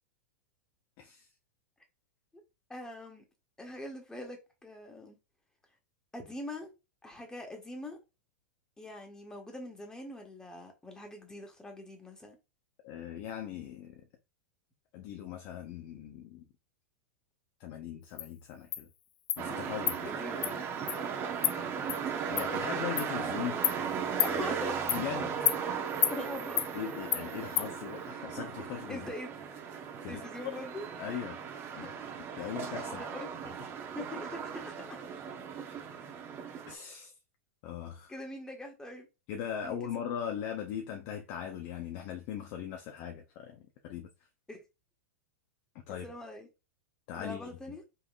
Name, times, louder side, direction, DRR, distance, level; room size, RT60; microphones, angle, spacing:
voice 1, 1.0-1.3 12.8-14.0 14.9-16.5 17.6-18.9 19.4-20.2 22.1-23.6 24.9-25.3 26.7-29.1 30.0-30.6 31.0-31.4 31.7-31.9 32.4-33.0 36.7-37.1 37.6-38.1 39.3-44.1 45.9-46.1 47.1-47.8, left 9 dB, 50° left, 0.8 m, -39 dB
voice 2, 2.7-3.2 3.6-5.2 6.1-6.7 7.0-8.0 8.8-12.4 20.0-20.7 24.2-24.8 26.1-26.6 28.9-29.3 30.1-30.9 31.7-31.9 32.3-32.4 32.9-33.3 33.9-35.0 38.1-39.1 39.6-39.8 44.5-44.6 45.9-46.5 47.1-47.8, left 1 dB, 10° left, 1.5 m, -43 dB
Insect, 18.2-18.3 18.7-18.8 19.3-19.4 19.9-20.0 20.4-20.5 20.9-21.0 21.4-21.5 21.9-22.0 22.4-22.5 23.0-23.1 23.6-23.8 24.2-24.3 24.9-25.0 25.5-25.6 26.0-26.2 26.6-26.7 27.1-27.2 27.6-27.7, left 10 dB, 85° left, 0.4 m, -28 dB
sound 1, 19.4-36.7, right 6 dB, 30° right, 1.1 m, -37 dB
5.4 x 3.5 x 2.5 m
hypercardioid pair, 125°, 8 cm